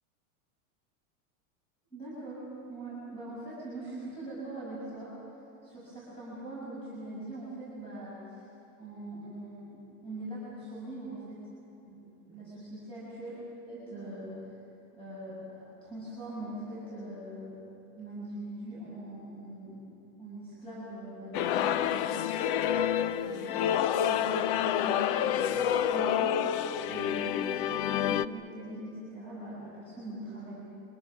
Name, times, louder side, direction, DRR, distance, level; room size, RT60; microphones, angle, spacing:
voice 1, 1.9-2.4 2.7-5.1 5.6-8.5 8.8-11.4 11.7-13.3 13.7-14.5 14.9-17.6 18.0-19.8 20.2-22.3 23.2-30.5, right 1 dB, 15° left, -8 dB, 6.5 m, -42 dB
sound 1, 21.3-28.3, left 10 dB, 45° left, 0.5 m, -28 dB
28.5 x 24.5 x 6.4 m, 2.8 s
supercardioid pair, 175°, 41 cm